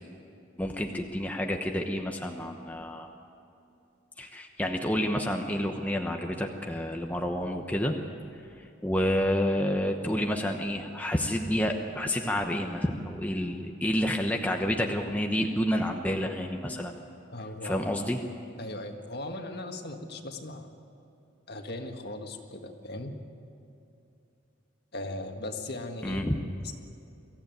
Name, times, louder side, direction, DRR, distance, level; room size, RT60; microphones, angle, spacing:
voice 1, 0.6-3.1 4.2-7.9 8.8-17.0 17.6-18.2 26.0-26.4, equal, 10° left, 2 dB, 1.0 m, -29 dB
voice 2, 17.3-17.9 18.6-20.7 21.5-23.1 24.9-26.3 26.6-26.7, left 2 dB, 50° left, 4 dB, 1.8 m, -38 dB
23.5 x 15.0 x 9.3 m, 2.8 s
head